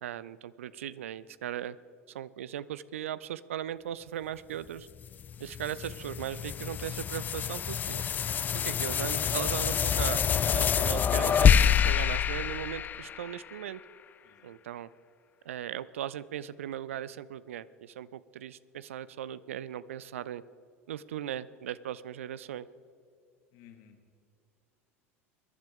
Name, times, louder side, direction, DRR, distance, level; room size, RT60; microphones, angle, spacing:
voice 1, 0.0-1.8 2.1-4.9 5.4-8.0 8.5-13.8 14.4-14.9 15.4-20.4 20.9-22.7, right 11 dB, 65° right, 18 dB, 0.4 m, -38 dB
sound 1, 5.0-13.6, left 8 dB, 25° left, 0.3 m, -27 dB
voice 2, 23.5-24.1, left 8 dB, 50° left, 6 dB, 1.9 m, -56 dB
22.0 x 11.5 x 3.6 m, 2.4 s
figure-of-eight pair, 75°, 8 cm